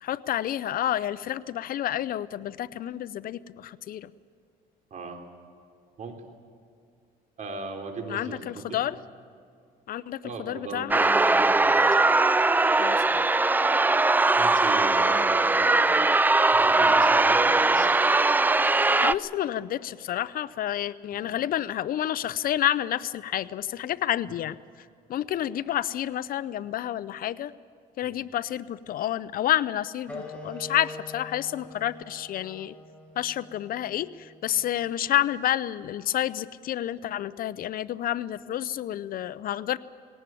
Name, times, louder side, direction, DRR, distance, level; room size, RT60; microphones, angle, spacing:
voice 1, 0.0-4.1 8.1-9.0 9.9-10.2 10.5-11.0 12.8-13.2 19.0-24.6 25.1-27.5 28.0-32.7 33.2-39.8, left 12 dB, 60° left, 17 dB, 0.6 m, -29 dB
voice 2, 7.4-8.8 10.2-11.7 14.3-16.0 16.5-18.0 21.1-21.4 28.0-28.2, right 4 dB, 45° right, 4 dB, 3.9 m, -38 dB
sound 1, 10.9-19.2, right 3 dB, 10° right, 0.4 m, -20 dB
sound 2, 30.1-35.2, left 2 dB, 5° left, 5.5 m, -44 dB
19.5 x 18.0 x 9.2 m, 2.4 s
cardioid pair, 110°, 17 cm